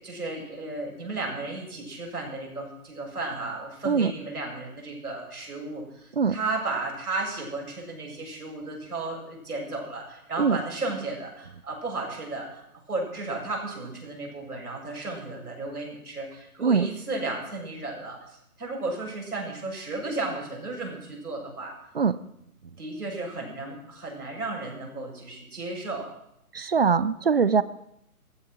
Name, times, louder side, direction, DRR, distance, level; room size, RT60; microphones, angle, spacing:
voice 1, 0.0-21.7 22.8-26.1, right 2 dB, 85° right, -1 dB, 7.3 m, -34 dB
voice 2, 26.5-27.6, right 5 dB, 40° right, 17 dB, 0.6 m, -22 dB
15.0 x 13.5 x 6.2 m, 0.78 s
hypercardioid pair, 165°, 44 cm